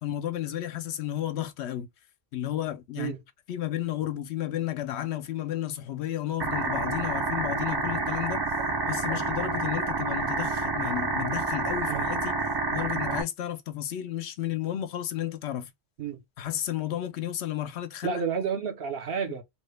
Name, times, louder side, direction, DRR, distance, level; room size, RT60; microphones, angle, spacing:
voice 1, 0.0-1.9 2.3-3.1 3.5-8.4 8.9-12.4 12.7-15.7 16.4-18.2, left 12 dB, 85° left, 0.9 m, -32 dB
sound 1, 6.4-13.2, right 3 dB, 40° right, 0.3 m, -29 dB
voice 2, 18.0-19.4, right 6 dB, 70° right, 0.9 m, -31 dB
3.0 x 2.1 x 3.1 m
omnidirectional pair, 1.1 m